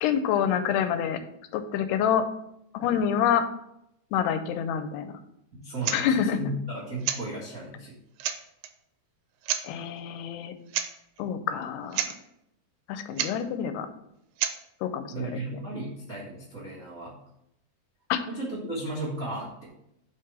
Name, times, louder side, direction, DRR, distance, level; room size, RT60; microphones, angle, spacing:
voice 1, 0.0-1.2 1.5-2.3 2.7-3.4 4.1-5.1 5.9-6.4 9.6-10.5 11.2-12.0 12.9-13.9 14.8-15.4 18.1-18.2, left 8 dB, 85° left, 10 dB, 2.7 m, -27 dB
voice 2, 5.5-8.0 15.1-17.1 18.2-19.7, right 1 dB, 55° right, -8 dB, 0.9 m, -35 dB
sound 1, 5.8-6.0 7.0-7.3 7.9-8.0 8.2-8.7 9.4-9.7 10.7-10.9 11.2-11.3 11.6-11.7 11.9-12.2 13.2-13.4 14.4-14.6, right 10 dB, 85° right, 2.5 m, -29 dB
5.7 x 4.7 x 6.1 m, 0.79 s
omnidirectional pair, 4.6 m